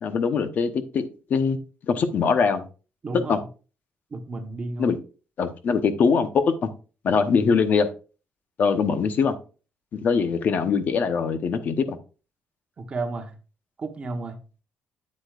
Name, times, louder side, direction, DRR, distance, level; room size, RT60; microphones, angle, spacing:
voice 1, 0.0-1.6 1.9-2.6 3.3-3.4 4.8-5.0 5.4-6.7 7.0-7.9 8.6-9.3 9.9-12.0, left 5 dB, 50° left, 0.9 m, -22 dB
voice 2, 4.1-4.9 12.8-13.3 13.8-14.4, right 3 dB, 30° right, 1.2 m, -32 dB
8.7 x 8.0 x 2.5 m
cardioid pair, 140°, 4 cm